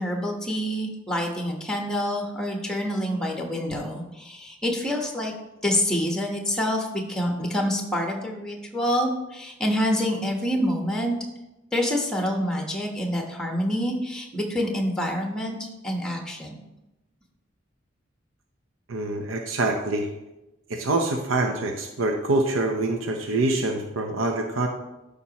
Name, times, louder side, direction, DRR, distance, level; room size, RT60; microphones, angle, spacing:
voice 1, 0.0-5.3 5.6-11.2 11.7-16.5, equal, 5° left, 2 dB, 1.2 m, -27 dB
voice 2, 18.9-20.1 20.7-24.7, right 2 dB, 80° right, 3 dB, 0.7 m, -25 dB
12.5 x 5.2 x 3.0 m, 0.96 s
head